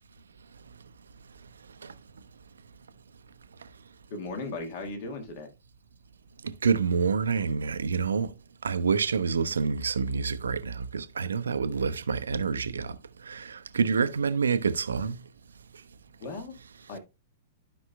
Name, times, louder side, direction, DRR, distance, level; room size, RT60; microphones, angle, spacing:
voice 1, 4.1-5.5 16.2-16.5 16.9-17.0, left 3 dB, 45° left, 1.6 m, -36 dB
voice 2, 6.4-8.3 8.6-13.0 13.2-15.2, right 5 dB, 70° right, 0.6 m, -27 dB
12.5 x 5.3 x 2.2 m
figure-of-eight pair, 100°, 0 cm